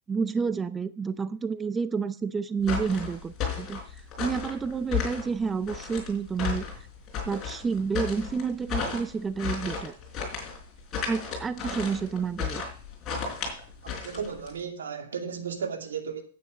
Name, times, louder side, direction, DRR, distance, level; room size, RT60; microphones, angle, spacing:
voice 1, 0.1-3.8 4.2-6.7 7.3-9.9 11.1-12.6, right 5 dB, 15° right, 0.5 m, -29 dB
sound 1, 2.6-14.6, left 6 dB, 25° left, 4.4 m, -34 dB
voice 2, 13.8-16.2, right 6 dB, 90° right, 2.3 m, -34 dB
9.8 x 8.7 x 5.1 m
hypercardioid pair, 135°, 0 cm